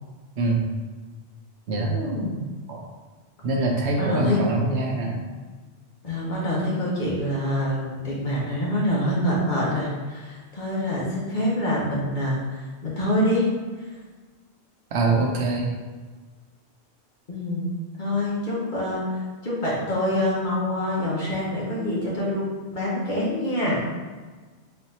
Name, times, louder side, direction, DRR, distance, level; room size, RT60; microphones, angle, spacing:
voice 1, 1.9-2.4 3.9-4.4 6.0-13.5 17.3-22.4 22.7-23.8, left 1 dB, 45° left, -6 dB, 1.2 m, -26 dB
voice 2, 3.4-5.2 14.9-15.8, right 3 dB, 70° right, 0 dB, 0.9 m, -24 dB
4.1 x 2.6 x 4.1 m, 1.4 s
omnidirectional pair, 1.1 m